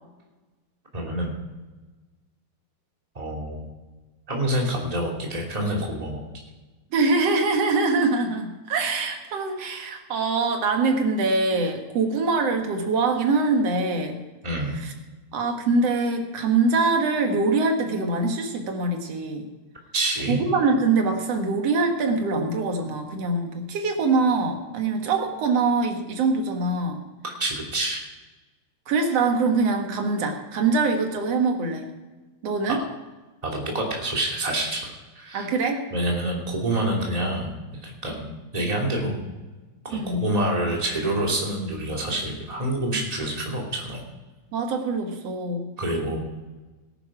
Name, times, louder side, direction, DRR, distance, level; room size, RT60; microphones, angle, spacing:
voice 1, 0.9-1.3 3.1-3.6 4.3-6.2 14.4-14.8 19.9-20.4 27.2-28.0 32.7-32.9 33.4-35.5 35.9-37.5 37.8-38.3 38.5-39.2 39.8-44.0 45.8-46.3, right 1 dB, 15° right, -1 dB, 2.4 m, -27 dB
voice 2, 6.9-14.2 14.8-14.9 15.3-19.5 20.3-27.0 28.9-31.9 32.4-32.8 35.3-35.9 39.9-40.3 44.5-45.7, right 3 dB, 60° right, 4 dB, 2.5 m, -23 dB
18.0 x 10.0 x 4.9 m, 1.2 s
omnidirectional pair, 3.4 m